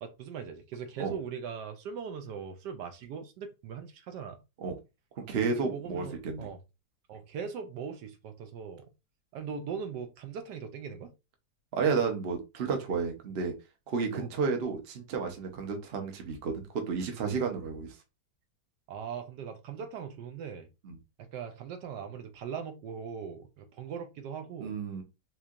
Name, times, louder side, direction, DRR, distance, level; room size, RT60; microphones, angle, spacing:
voice 1, 0.0-4.4 5.4-6.6 7.1-8.9 9.3-11.1 14.2-14.3 18.9-20.7 21.2-24.8, right 6 dB, 75° right, 1.2 m, -40 dB
voice 2, 5.2-6.5 11.7-13.5 13.9-18.0 20.8-21.0 24.6-25.0, right 5 dB, 45° right, 0.8 m, -32 dB
4.4 x 2.8 x 2.4 m
omnidirectional pair, 1.9 m